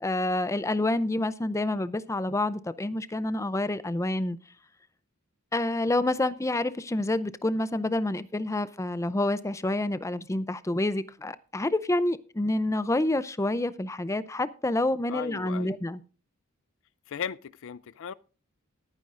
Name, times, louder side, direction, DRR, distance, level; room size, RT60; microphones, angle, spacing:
voice 1, 0.0-4.4 5.5-16.0, left 1 dB, 15° left, 0.5 m, -28 dB
voice 2, 15.1-15.8 17.1-18.1, left 7 dB, 65° left, 0.4 m, -36 dB
20.0 x 9.5 x 2.5 m
head